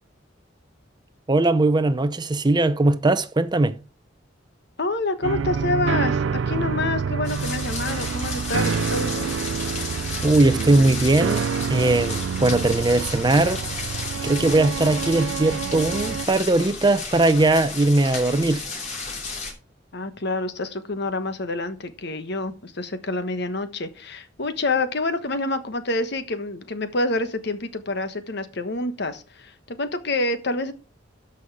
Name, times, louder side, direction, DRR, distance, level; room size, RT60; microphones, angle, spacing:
voice 1, 1.3-3.7 10.2-13.6 14.2-18.6, right 2 dB, 25° right, 0.6 m, -20 dB
voice 2, 4.8-9.3 19.9-30.7, left 2 dB, 60° left, 1.2 m, -27 dB
sound 1, 5.2-16.3, right 6 dB, 90° right, 0.4 m, -27 dB
sound 2, 7.2-19.5, left 4 dB, 40° left, 3.0 m, -33 dB
13.0 x 5.6 x 4.8 m
head